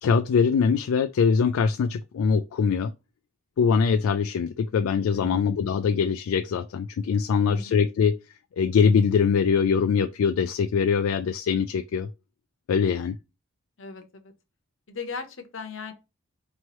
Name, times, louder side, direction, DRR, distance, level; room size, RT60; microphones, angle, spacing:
voice 1, 0.0-2.9 3.6-8.2 8.6-12.1 12.7-13.2, left 6 dB, 80° left, 0.3 m, -23 dB
voice 2, 5.1-5.5 7.4-7.7 13.8-14.3 14.9-15.9, left 4 dB, 65° left, 0.9 m, -38 dB
4.4 x 3.1 x 2.9 m
head